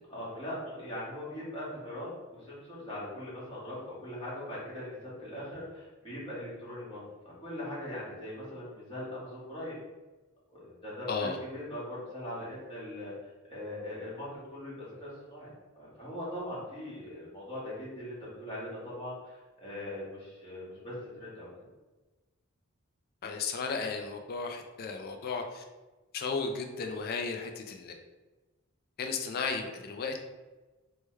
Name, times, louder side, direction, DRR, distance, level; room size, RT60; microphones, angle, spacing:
voice 1, 0.1-7.0 7.2-9.8 10.5-13.1 13.5-15.5 15.8-20.9 21.2-21.5, left 1 dB, 25° left, -9 dB, 1.5 m, -40 dB
voice 2, 23.2-25.6 26.1-27.9 29.0-30.2, left 4 dB, 45° left, 4 dB, 0.4 m, -34 dB
3.2 x 2.2 x 3.2 m, 1.2 s
head